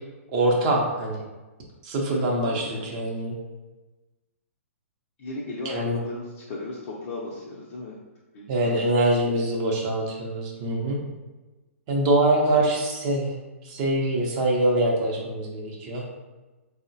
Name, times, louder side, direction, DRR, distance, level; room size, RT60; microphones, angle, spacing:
voice 1, 0.3-1.2 1.8-3.3 5.7-6.0 8.5-11.0 11.9-13.3 13.6-16.0, right 1 dB, 35° right, -1 dB, 0.6 m, -24 dB
voice 2, 2.4-3.2 5.2-8.0 8.3-8.8 9.2-9.5 12.5-12.9, left 2 dB, 45° left, -4 dB, 0.5 m, -36 dB
3.6 x 2.0 x 2.6 m, 1.2 s
hypercardioid pair, 125°, 8 cm